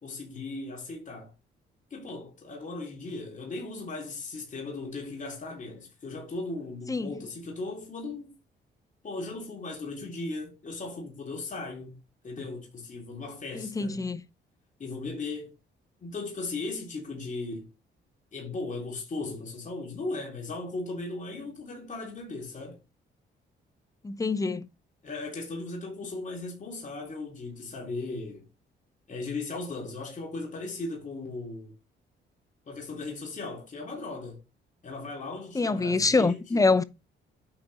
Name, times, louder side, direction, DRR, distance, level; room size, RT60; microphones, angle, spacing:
voice 1, 0.0-1.3 1.9-8.3 9.0-11.9 12.2-14.0 14.8-15.5 16.0-17.7 18.3-22.8 25.0-28.4 29.1-31.7 32.6-34.4 34.8-36.6, left 3 dB, 40° left, 3.3 m, -37 dB
voice 2, 13.5-14.2 24.0-24.7 35.5-36.8, left 3 dB, 15° left, 0.6 m, -25 dB
8.7 x 4.3 x 4.1 m
cardioid pair, 90°, 20 cm